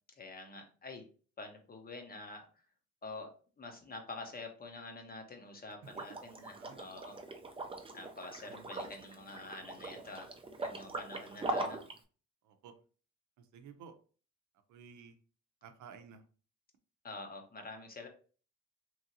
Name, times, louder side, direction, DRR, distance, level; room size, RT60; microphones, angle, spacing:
voice 1, 0.2-1.1 1.4-2.5 3.0-7.1 7.9-10.3 10.6-11.8 17.0-18.1, left 3 dB, 30° left, 0.8 m, -47 dB
Liquid, 5.9-12.0, right 2 dB, 20° right, 0.5 m, -41 dB
voice 2, 6.4-6.8 8.5-8.7 12.4-12.8 13.4-13.9 14.7-15.2 15.6-16.2, right 6 dB, 75° right, 0.6 m, -53 dB
3.0 x 2.7 x 2.6 m
cardioid pair, 90°, 30 cm